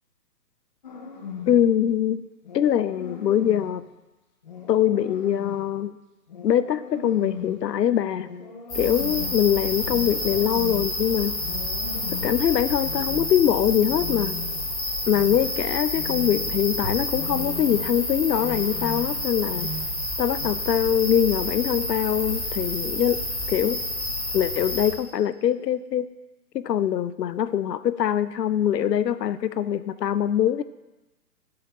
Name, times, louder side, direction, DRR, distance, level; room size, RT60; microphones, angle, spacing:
sound 1, 0.8-1.7 2.4-3.8 4.4-5.7 6.3-7.6 8.2-9.4 9.9-10.9 11.4-12.4 12.8-13.4 13.8-14.7 15.1-15.5 15.9-16.7 17.1-17.9 18.4-19.2 19.5-20.0 20.4-20.5, left 5 dB, 30° left, 0.7 m, -38 dB
voice 1, 1.5-2.3 2.5-3.8 4.7-6.0 6.4-8.3 8.7-11.4 12.1-14.4 15.1-19.7 20.2-23.2 23.5-23.8 24.3-26.1 26.5-30.6, left 10 dB, 75° left, 15 dB, 0.6 m, -23 dB
sound 2, 8.7-24.9, left 1 dB, 10° left, 1.3 m, -29 dB
10.5 x 6.8 x 4.1 m, 1.1 s
hypercardioid pair, 150°, 49 cm